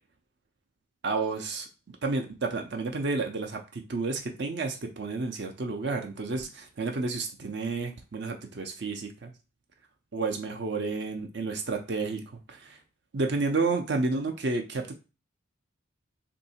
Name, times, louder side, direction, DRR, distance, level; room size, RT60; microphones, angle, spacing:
voice 1, 1.0-1.7 2.0-9.3 10.1-12.8 13.1-15.0, right 3 dB, 55° right, 4 dB, 0.6 m, -31 dB
2.7 x 2.6 x 4.1 m, 0.31 s
head